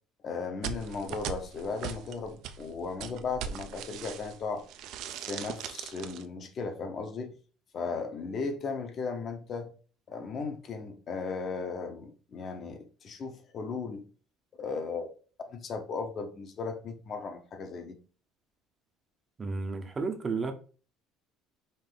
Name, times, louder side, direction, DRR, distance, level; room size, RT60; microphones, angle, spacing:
voice 1, 0.2-4.6 5.3-7.3 7.7-9.7 10.1-14.0 14.6-15.1 15.5-18.0, left 4 dB, 35° left, 0.8 m, -36 dB
sound 1, 0.6-4.4 4.7-6.2, right 8 dB, 55° right, 0.5 m, -39 dB
voice 2, 19.4-20.5, right 4 dB, 20° right, 0.7 m, -32 dB
5.4 x 2.6 x 3.7 m
cardioid pair, 160°, 0 cm